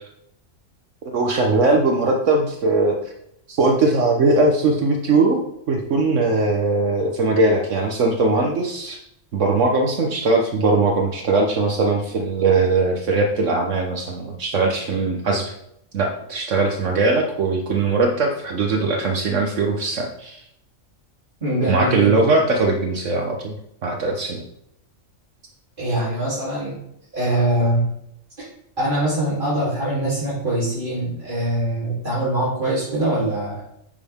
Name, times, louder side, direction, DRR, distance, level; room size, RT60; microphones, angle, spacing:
voice 1, 1.1-3.0 3.5-9.0 9.3-15.5 15.9-20.4 21.7-23.5 23.8-24.4, right 3 dB, 70° right, 2 dB, 1.3 m, -20 dB
voice 2, 21.4-22.2 25.8-26.7 27.1-27.9 28.8-33.7, right 1 dB, 40° right, -11 dB, 3.5 m, -23 dB
8.8 x 7.4 x 3.6 m, 0.76 s
omnidirectional pair, 1.3 m